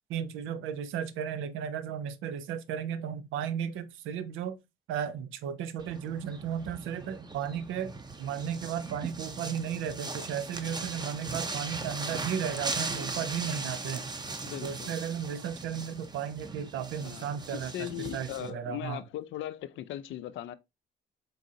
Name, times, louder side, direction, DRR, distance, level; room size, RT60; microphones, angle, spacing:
voice 1, 0.1-4.6 4.9-7.9 8.2-14.1 14.6-19.0, right 8 dB, 90° right, 0.5 m, -34 dB
sound 1, 5.8-18.5, right 3 dB, 20° right, 0.6 m, -39 dB
voice 2, 14.4-14.9 17.0-17.3 17.5-20.5, left 13 dB, 75° left, 0.4 m, -38 dB
3.8 x 3.7 x 2.6 m
cardioid pair, 90°, 20 cm